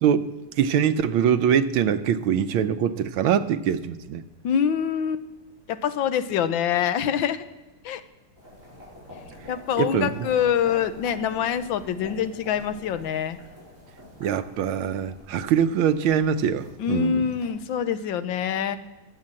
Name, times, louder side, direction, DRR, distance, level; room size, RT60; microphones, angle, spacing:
voice 1, 0.0-4.2 9.8-10.3 14.2-17.3, right 8 dB, 85° right, 12 dB, 1.6 m, -23 dB
voice 2, 4.4-5.2 5.7-7.4 7.8-8.0 9.5-13.4 16.8-18.8, left 8 dB, 75° left, 11 dB, 1.5 m, -25 dB
sound 1, 8.4-17.4, left 1 dB, 40° right, 8.0 m, -46 dB
19.5 x 8.3 x 7.5 m, 1.1 s
omnidirectional pair, 2.2 m